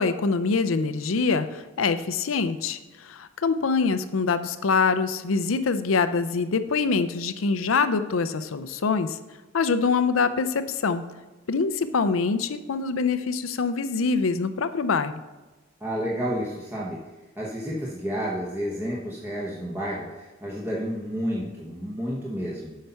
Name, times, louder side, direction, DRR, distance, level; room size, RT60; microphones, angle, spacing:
voice 1, 0.0-9.2 9.5-11.0 11.5-15.2, left 4 dB, 80° left, 11 dB, 0.5 m, -24 dB
voice 2, 15.8-17.0 17.4-22.8, equal, 10° right, -5 dB, 1.0 m, -30 dB
7.9 x 5.7 x 5.6 m, 1.2 s
head